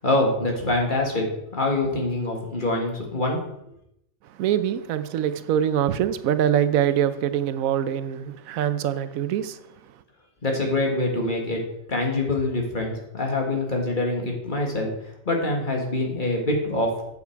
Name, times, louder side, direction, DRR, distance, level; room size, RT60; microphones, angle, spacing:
voice 1, 0.0-1.3 1.5-3.4 10.4-11.6 11.9-14.9 15.3-16.9, left 2 dB, 35° left, 1.9 m, -25 dB
voice 2, 4.2-9.6, right 10 dB, 85° right, 1.1 m, -24 dB
8.2 x 7.2 x 4.5 m
omnidirectional pair, 1.4 m